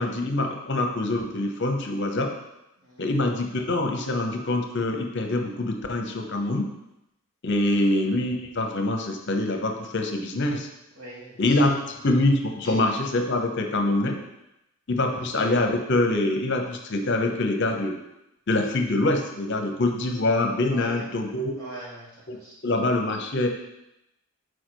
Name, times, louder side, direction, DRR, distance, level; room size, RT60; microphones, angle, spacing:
voice 1, 0.0-2.3 3.0-6.7 7.4-10.7 11.4-14.2 14.9-18.0 18.5-21.6 22.3-22.4 22.6-23.5, left 2 dB, 50° left, 4 dB, 0.8 m, -25 dB
voice 2, 2.8-3.1 10.9-11.9 12.6-12.8 15.1-15.2 20.6-21.1 21.6-22.6, right 1 dB, 85° right, -6 dB, 2.6 m, -42 dB
6.4 x 4.7 x 4.5 m, 0.89 s
head